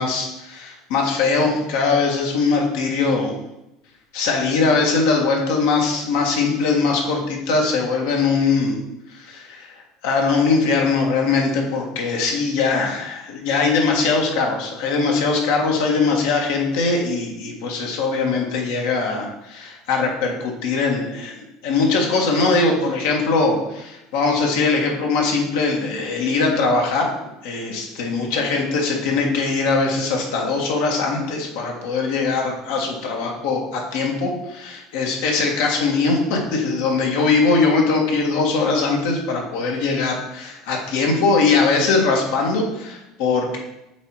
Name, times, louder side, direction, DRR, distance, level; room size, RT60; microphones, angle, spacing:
voice 1, 0.0-3.3 4.1-8.8 9.1-9.7 10.0-27.1 27.4-43.6, left 4 dB, 80° left, 0 dB, 1.6 m, -21 dB
8.0 x 3.0 x 4.7 m, 0.90 s
supercardioid pair, 95°, 0 cm